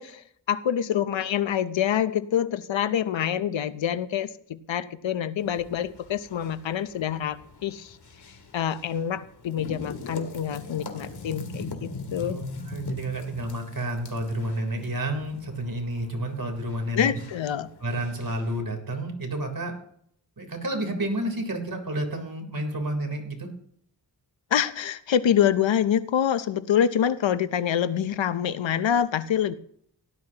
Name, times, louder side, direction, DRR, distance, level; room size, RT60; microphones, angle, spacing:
voice 1, 0.0-8.0 8.5-12.4 16.9-17.7 24.5-29.5, left 9 dB, 85° left, 14 dB, 0.8 m, -26 dB
sound 1, 5.4-18.6, left 3 dB, 60° left, 2.3 m, -41 dB
voice 2, 12.2-17.2 17.8-19.7 20.4-23.5, right 1 dB, 50° right, 4 dB, 3.6 m, -30 dB
17.5 x 11.5 x 2.9 m, 0.66 s
cardioid pair, 45°, 44 cm